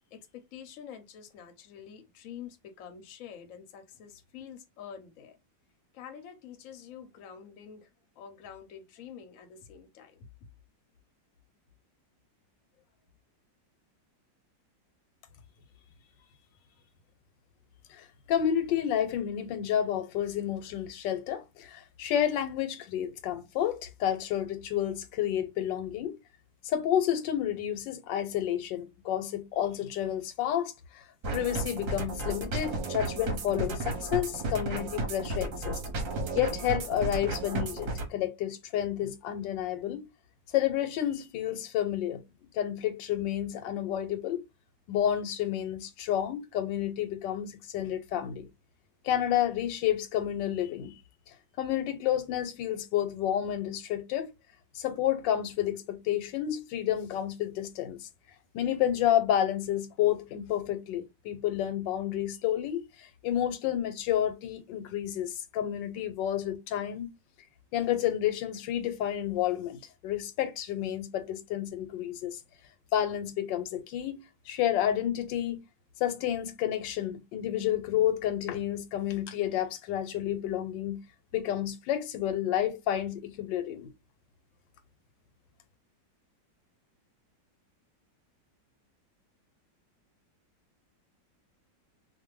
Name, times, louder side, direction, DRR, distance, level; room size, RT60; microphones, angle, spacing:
voice 1, 0.1-5.4 5.9-7.9 8.2-10.3, left 8 dB, 60° left, 0.9 m, -47 dB
voice 2, 17.9-26.2 26.6-31.0 31.3-35.8 36.3-40.1 40.5-42.2 42.5-44.4 44.9-48.5 49.0-50.9 51.6-54.3 54.7-58.1 58.5-67.1 67.7-72.4 72.9-75.6 76.0-81.0 81.3-83.9, left 11 dB, 85° left, 1.3 m, -30 dB
sound 1, 31.2-38.1, right 2 dB, 55° right, 1.0 m, -33 dB
2.6 x 2.5 x 3.0 m
omnidirectional pair, 1.9 m